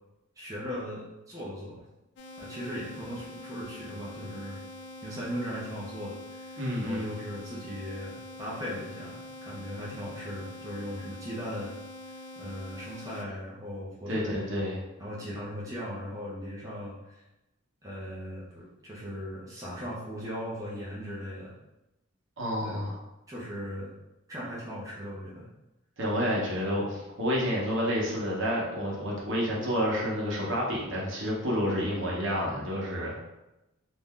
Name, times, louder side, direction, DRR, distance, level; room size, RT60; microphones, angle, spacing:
voice 1, 0.4-1.8 2.4-4.6 5.0-11.7 12.4-14.5 15.0-17.2 17.8-21.5 22.6-22.9 23.3-23.9 24.3-25.5 26.8-27.0, equal, 15° right, -7 dB, 0.6 m, -38 dB
sound 1, 2.2-13.2, left 1 dB, 55° left, 0.3 m, -45 dB
voice 2, 6.6-7.2 14.1-14.8 22.4-23.0 26.0-33.1, equal, 60° right, -4 dB, 0.9 m, -29 dB
2.6 x 2.2 x 3.5 m, 0.95 s
head